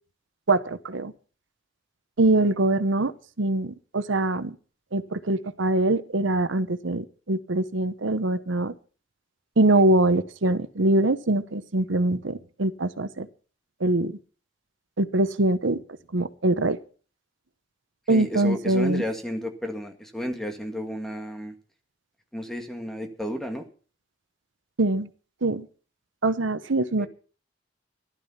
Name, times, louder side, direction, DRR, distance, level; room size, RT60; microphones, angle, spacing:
voice 1, 0.5-1.1 2.2-3.1 3.4-4.6 4.9-8.7 9.6-13.3 13.8-14.2 15.0-15.8 16.1-16.8 18.1-19.0 24.8-25.1 25.4-25.7 26.2-27.1, right 2 dB, 85° right, 13 dB, 0.9 m, -23 dB
voice 2, 18.1-21.5 22.3-23.6 27.0-27.1, equal, ahead, 5 dB, 1.8 m, -32 dB
15.0 x 12.0 x 5.7 m, 0.40 s
head